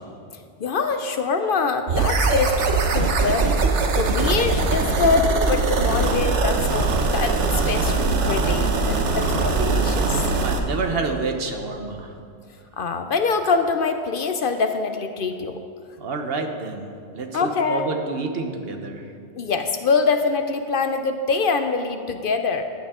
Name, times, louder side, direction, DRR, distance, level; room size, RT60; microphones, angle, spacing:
voice 1, 0.6-3.6 4.0-7.4 7.7-8.0 8.3-10.2 12.8-15.6 17.3-17.8 19.4-22.6, left 4 dB, 60° left, 7 dB, 0.7 m, -24 dB
sound 1, 1.9-10.6, right 3 dB, 85° right, 1.2 m, -21 dB
voice 2, 10.4-12.1 16.0-16.9 17.1-19.0, right 3 dB, 60° right, 5 dB, 1.1 m, -28 dB
14.0 x 9.4 x 3.6 m, 2.4 s
omnidirectional pair, 1.1 m